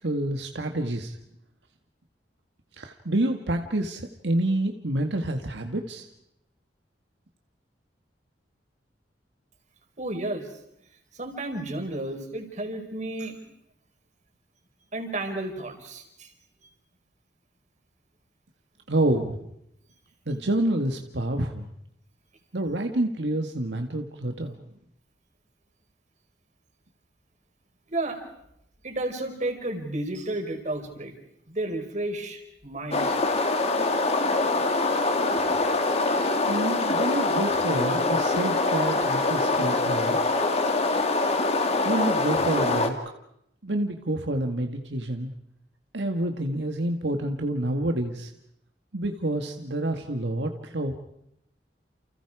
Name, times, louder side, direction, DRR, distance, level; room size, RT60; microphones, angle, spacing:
voice 1, 0.0-1.2 2.8-6.1 18.9-19.5 20.3-21.7 22.5-24.6 36.5-40.2 41.8-43.0 43.6-45.3 45.9-48.3 48.9-51.0, right 1 dB, 80° right, 4 dB, 1.9 m, -28 dB
voice 2, 10.0-10.5 11.1-13.4 14.9-16.3 27.9-28.2 28.8-31.1 31.5-33.2 35.5-35.6, right 2 dB, 45° right, 5 dB, 5.0 m, -32 dB
sound 1, 32.9-42.9, left 2 dB, 40° left, 2.7 m, -24 dB
30.0 x 29.5 x 5.0 m, 0.77 s
head